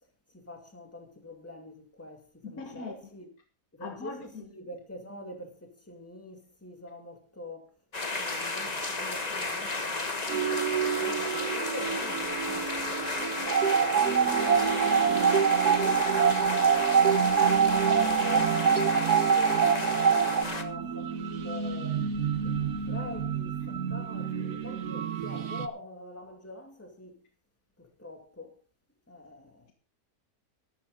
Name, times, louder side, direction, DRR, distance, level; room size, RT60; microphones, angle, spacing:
voice 1, 0.3-3.3 3.7-10.6 10.9-14.2 14.5-17.4 17.8-22.1 22.4-27.2 27.8-28.6 29.1-29.7, left 2 dB, 10° left, 2.4 m, -45 dB
voice 2, 2.4-2.9 3.8-4.5, left 4 dB, 60° left, 2.1 m, -40 dB
sound 1, 7.9-20.6, left 3 dB, 25° left, 1.3 m, -33 dB
sound 2, 10.3-25.7, right 7 dB, 60° right, 1.4 m, -33 dB
sound 3, 13.5-20.4, right 7 dB, 85° right, 0.4 m, -24 dB
13.5 x 13.0 x 3.9 m
omnidirectional pair, 1.7 m